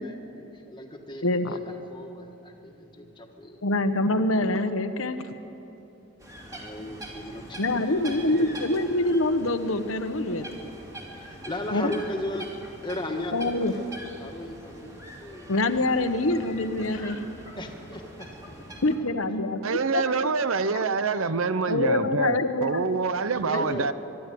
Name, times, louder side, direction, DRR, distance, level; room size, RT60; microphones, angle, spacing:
voice 1, 0.0-3.6 4.2-4.3 6.4-7.9 8.3-8.8 11.1-12.6 12.8-16.3 17.6-18.8 23.4-23.9, left 1 dB, 20° left, 1.6 m, -37 dB
voice 2, 1.2-1.6 3.6-5.3 7.6-10.5 11.7-11.9 13.3-13.7 15.5-17.2 18.8-20.0 20.7-20.8 21.7-23.0 23.5-23.6, left 2 dB, 80° left, 1.1 m, -25 dB
sound 1, 6.2-19.0, right 1 dB, 15° right, 2.6 m, -43 dB
voice 3, 19.6-23.9, right 4 dB, 80° right, 0.8 m, -26 dB
23.5 x 11.5 x 9.3 m
head